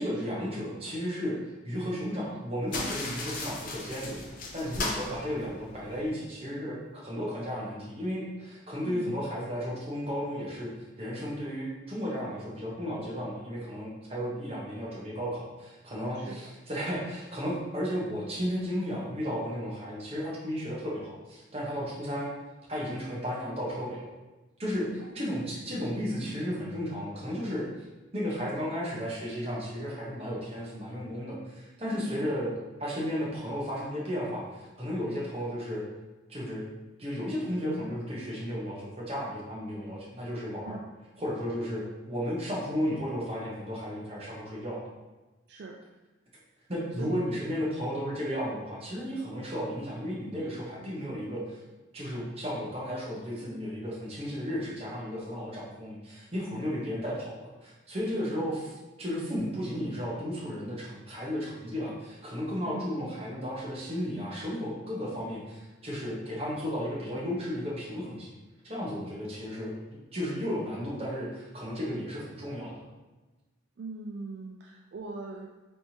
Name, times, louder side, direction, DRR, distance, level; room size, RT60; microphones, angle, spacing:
voice 1, 0.0-1.4 1.6-22.3 22.7-24.1 24.6-27.7 28.1-32.5 32.8-35.8 36.3-36.6 37.0-40.8 41.2-44.9 46.7-51.6 51.9-58.7 59.0-68.3 68.6-72.8, equal, 30° right, -6 dB, 1.1 m, -34 dB
sound 1, 2.7-6.1, left 2 dB, 45° left, 0.6 m, -36 dB
voice 2, 8.8-9.3 16.1-16.5 25.0-25.8 31.9-32.2 40.6-40.8 45.5-45.8 47.0-47.3 50.8-51.2 58.4-58.5 62.6-62.9 73.8-75.7, right 3 dB, 55° right, -1 dB, 0.3 m, -42 dB
4.2 x 3.4 x 2.9 m, 1.2 s
head